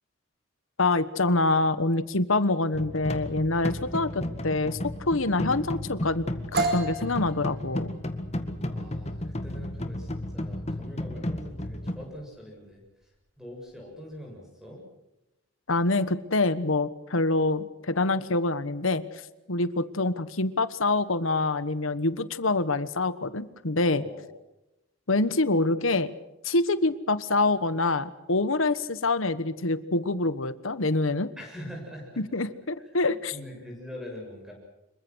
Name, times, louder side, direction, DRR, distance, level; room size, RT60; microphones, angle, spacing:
voice 1, 0.8-4.8 5.1-6.2 6.5-7.9 15.7-19.0 19.5-24.0 25.1-26.1 26.4-31.3 32.2-33.3, left 2 dB, 80° left, 14 dB, 1.3 m, -26 dB
sound 1, 2.7-12.0, left 1 dB, 30° left, 1.8 m, -33 dB
sound 2, 6.5-14.2, right 3 dB, 50° right, 4.5 m, -36 dB
voice 2, 8.7-12.8 13.4-14.8 24.0-24.3 31.4-32.2 33.0-34.5, equal, 5° right, 0 dB, 7.4 m, -43 dB
26.5 x 23.0 x 6.3 m, 0.94 s
head